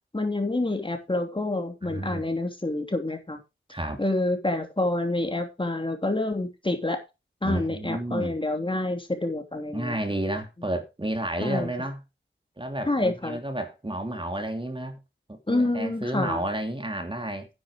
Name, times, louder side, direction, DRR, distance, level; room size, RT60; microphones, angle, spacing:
voice 1, 0.1-3.4 4.0-7.0 7.4-10.0 11.4-11.7 12.9-13.4 15.5-16.4, left 2 dB, 25° left, 3.0 m, -27 dB
voice 2, 1.8-2.2 3.7-4.0 7.4-8.4 9.7-12.0 12.6-15.0 15.3-17.5, right 1 dB, 25° right, 2.9 m, -31 dB
10.0 x 8.1 x 5.0 m
cardioid pair, 40°, 21 cm